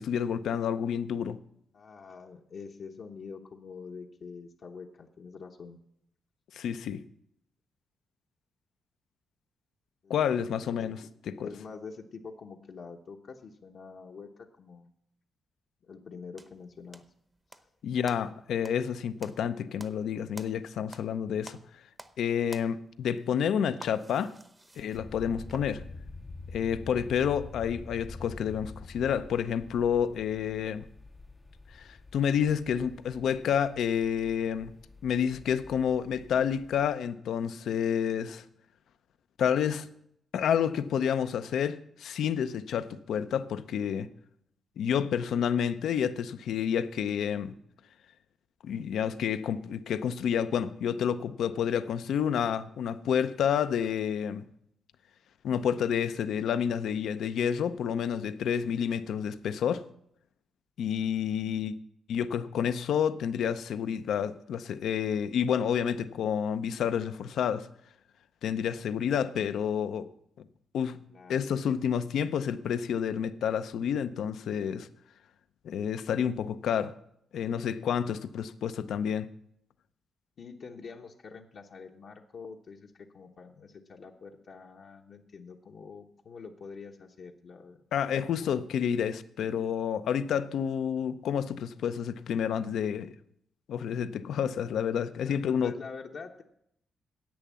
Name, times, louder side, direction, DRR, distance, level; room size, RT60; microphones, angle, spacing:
voice 1, 0.0-1.4 6.5-7.0 10.1-11.5 17.8-21.6 22.2-24.3 24.8-25.8 26.5-30.8 31.7-34.8 35.0-38.4 39.4-39.9 40.3-44.1 44.8-47.5 48.6-54.4 55.4-59.9 60.8-61.7 62.1-67.7 68.4-70.1 70.7-71.0 71.3-74.9 75.6-76.9 77.3-79.3 87.9-93.1 93.7-95.7, left 8 dB, 75° left, 0.6 m, -29 dB
voice 2, 1.7-5.8 10.0-10.7 11.4-14.9 15.9-17.0 71.1-71.8 80.4-87.8 88.3-88.5 95.3-96.4, left 5 dB, 60° left, 1.0 m, -46 dB
sound 1, 16.4-17.7 18.1-21.2 21.4-22.2 22.5-25.8, right 2 dB, 20° right, 0.8 m, -50 dB
sound 2, 24.9-36.9, left 3 dB, 25° left, 0.5 m, -47 dB
10.5 x 8.2 x 7.5 m
cardioid pair, 90°, 0 cm